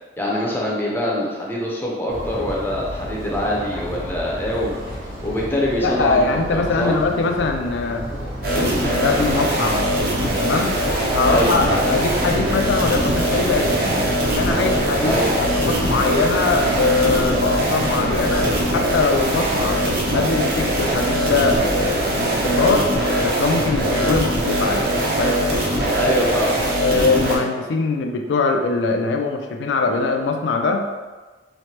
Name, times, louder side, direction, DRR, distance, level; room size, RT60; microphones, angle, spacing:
voice 1, 0.2-4.8 5.2-6.9 11.3-11.5 15.1-15.3 26.0-26.6, left 1 dB, 10° left, -4 dB, 0.5 m, -24 dB
sound 1, 2.1-18.6, equal, 85° right, 1.3 m, -32 dB
voice 2, 5.8-8.1 8.5-9.9 10.4-10.7 11.1-13.8 14.4-19.8 20.1-22.9 23.2-24.9 25.2-25.5 26.8-30.9, left 3 dB, 75° left, 4 dB, 0.3 m, -22 dB
sound 2, 8.4-27.4, right 1 dB, 55° right, 0.6 m, -21 dB
sound 3, 11.2-23.0, equal, 45° left, 0.7 m, -32 dB
3.1 x 2.1 x 2.8 m, 1.3 s
head